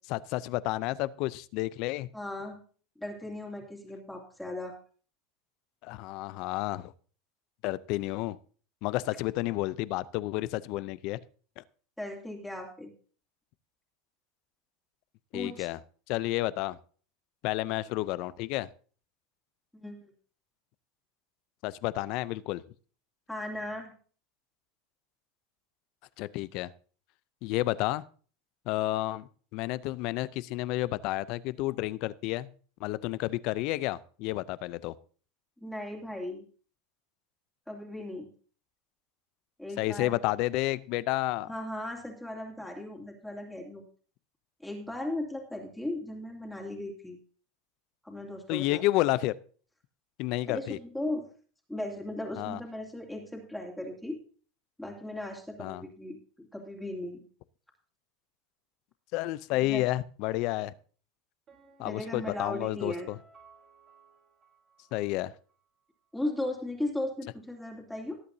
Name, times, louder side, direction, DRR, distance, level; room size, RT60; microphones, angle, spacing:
voice 1, 0.1-2.1 5.8-6.9 7.6-8.4 8.8-11.2 11.6-11.7 15.3-15.8 16.1-16.8 17.4-18.7 21.6-22.6 26.2-26.7 27.4-28.0 28.7-32.5 32.8-34.9 39.8-41.5 48.5-49.3 50.2-50.8 52.4-52.6 55.6-55.8 59.1-60.7 61.8-63.2 64.9-65.3, left 17 dB, 60° left, 18 dB, 0.5 m, -31 dB
voice 2, 2.1-2.6 3.0-4.7 12.0-12.9 15.3-15.7 19.7-20.1 23.3-23.9 35.6-36.4 37.7-38.3 39.6-40.1 41.5-43.8 44.6-47.2 48.0-48.8 50.4-51.2 51.7-54.2 54.8-57.2 59.5-59.8 61.8-63.1 66.1-68.2, left 1 dB, 5° left, -1 dB, 2.7 m, -37 dB
Piano, 61.5-65.2 65.5-65.6, right 5 dB, 40° right, 4.4 m, -58 dB
18.5 x 8.4 x 2.7 m, 0.41 s
supercardioid pair, 115°, 0 cm